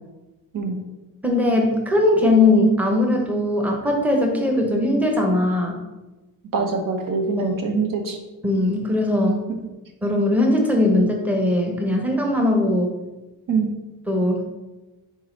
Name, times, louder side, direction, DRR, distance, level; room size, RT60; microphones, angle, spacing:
voice 1, 1.2-5.8 7.4-7.6 8.4-9.4 10.0-12.9 14.1-14.4, left 1 dB, 5° right, 1 dB, 0.8 m, -20 dB
voice 2, 6.5-8.2 9.6-9.7 13.5-13.7, right 4 dB, 70° right, 4 dB, 0.9 m, -24 dB
4.7 x 4.0 x 5.1 m, 1.1 s
wide cardioid pair, 155°, 34 cm